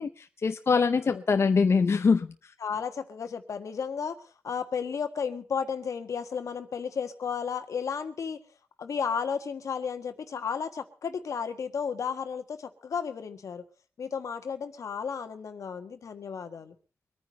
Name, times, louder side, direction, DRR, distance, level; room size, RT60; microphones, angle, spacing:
voice 1, 0.0-2.3, left 5 dB, 55° left, 0.7 m, -23 dB
voice 2, 2.6-8.4 8.8-13.6 14.0-16.7, left 6 dB, 80° left, 1.5 m, -33 dB
24.0 x 9.6 x 4.3 m
wide cardioid pair, 85°, 5 cm